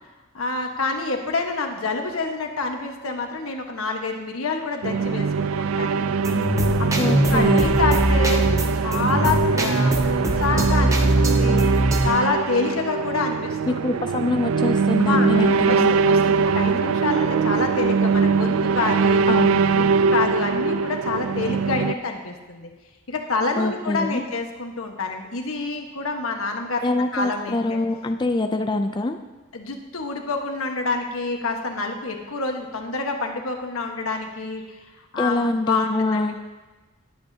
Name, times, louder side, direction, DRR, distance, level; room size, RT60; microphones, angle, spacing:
voice 1, 0.3-6.1 7.0-11.6 12.0-13.7 15.0-19.2 19.7-22.7 23.1-26.8 27.1-27.8 29.5-34.6 35.1-35.4 35.7-36.4, left 3 dB, 85° left, 3 dB, 1.3 m, -27 dB
sound 1, 4.8-21.9, right 5 dB, 80° right, 0.4 m, -22 dB
sound 2, 6.2-12.1, right 1 dB, 15° right, 0.8 m, -22 dB
voice 2, 7.0-7.8 13.7-15.9 19.3-19.6 23.6-24.2 26.8-29.2 35.2-36.4, left 2 dB, 20° left, 6 dB, 0.4 m, -24 dB
19.5 x 7.9 x 2.8 m, 1.2 s
head